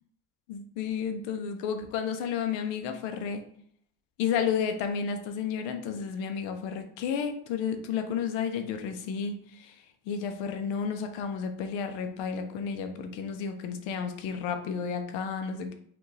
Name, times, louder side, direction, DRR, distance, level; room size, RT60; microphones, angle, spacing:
voice 1, 0.5-3.4 4.2-9.7 10.1-15.7, left 7 dB, 90° left, 6 dB, 0.8 m, -32 dB
5.8 x 2.6 x 3.2 m, 0.65 s
cardioid pair, 135°, 43 cm